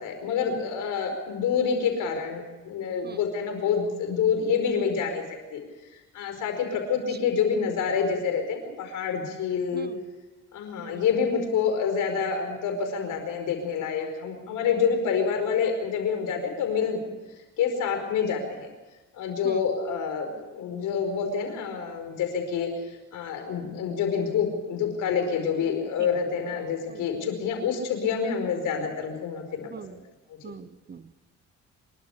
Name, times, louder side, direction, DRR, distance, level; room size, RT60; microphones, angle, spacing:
voice 1, 0.0-5.2 5.5-5.6 6.1-9.9 10.5-17.0 17.6-18.7 19.1-30.0 30.3-30.4, left 6 dB, 85° left, 5 dB, 5.1 m, -27 dB
voice 2, 9.7-10.0 10.8-11.1 19.4-19.7 26.0-26.1 26.9-27.1 29.7-30.0 30.4-31.2, right 6 dB, 35° right, 14 dB, 1.0 m, -42 dB
26.5 x 12.5 x 8.5 m, 1.1 s
cardioid pair, 90°, 30 cm